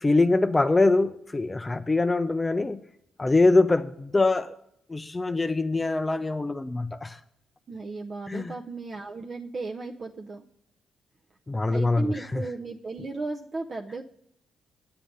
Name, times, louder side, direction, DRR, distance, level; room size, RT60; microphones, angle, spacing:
voice 1, 0.0-2.8 3.2-4.5 4.9-7.2 8.3-8.5 11.5-12.4, left 2 dB, 20° left, 0.4 m, -23 dB
voice 2, 7.7-10.5 11.7-14.0, right 3 dB, 40° right, 0.6 m, -35 dB
9.5 x 7.4 x 5.3 m
cardioid pair, 90°, 0 cm